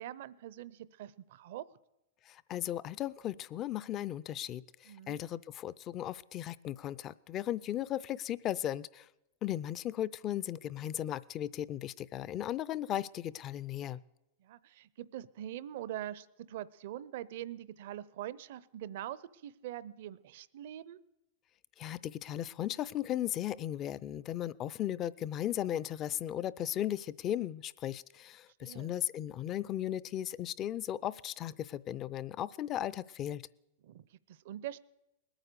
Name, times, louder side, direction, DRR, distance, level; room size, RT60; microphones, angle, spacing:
voice 1, 0.0-1.7 4.8-5.2 14.4-21.0 28.6-29.0 33.8-34.8, right 12 dB, 65° right, 19 dB, 0.6 m, -43 dB
voice 2, 2.3-9.1 9.4-14.0 21.8-33.4, left 12 dB, 35° left, 19 dB, 0.4 m, -36 dB
20.0 x 9.0 x 6.8 m, 0.92 s
hypercardioid pair, 125°, 0 cm